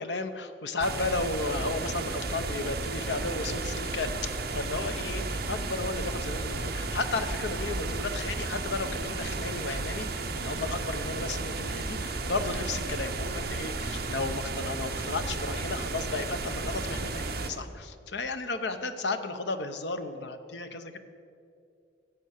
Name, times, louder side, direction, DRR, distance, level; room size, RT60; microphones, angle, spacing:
voice 1, 0.0-21.0, left 3 dB, 70° left, 9 dB, 0.9 m, -34 dB
sound 1, 0.8-17.5, right 3 dB, 55° right, 1.0 m, -33 dB
15.5 x 7.8 x 6.5 m, 2.5 s
head